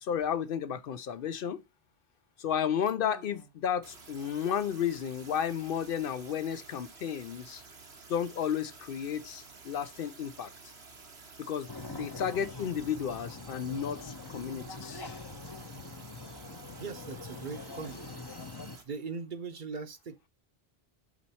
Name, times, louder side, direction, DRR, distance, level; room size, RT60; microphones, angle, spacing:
voice 1, 0.0-1.6 2.4-7.6 8.1-10.5 11.4-11.7 12.0-15.0, left 8 dB, 65° left, 0.7 m, -33 dB
sound 1, 2.8-3.5 3.8-18.8, right 4 dB, 90° right, 1.7 m, -52 dB
sound 2, 11.7-18.8, left 3 dB, 25° left, 0.7 m, -44 dB
voice 2, 16.7-18.0 18.8-20.3, right 5 dB, 50° right, 0.9 m, -40 dB
6.2 x 4.2 x 4.1 m
omnidirectional pair, 1.1 m